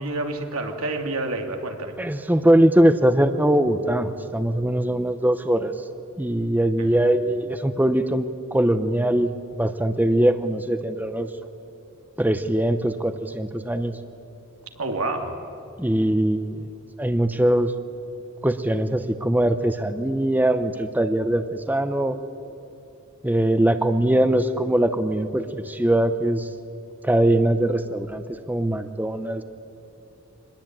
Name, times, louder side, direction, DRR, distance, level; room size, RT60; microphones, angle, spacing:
voice 1, 0.0-1.9 6.8-7.0 14.8-15.4, right 2 dB, 90° right, 3 dB, 2.9 m, -28 dB
voice 2, 2.0-5.7 6.2-9.3 9.6-11.3 12.2-14.0 15.8-16.7 17.0-17.7 18.4-22.2 23.2-26.5 27.0-28.2 28.5-29.4, right 1 dB, 10° right, 9 dB, 0.8 m, -21 dB
25.0 x 20.5 x 9.1 m, 2.8 s
head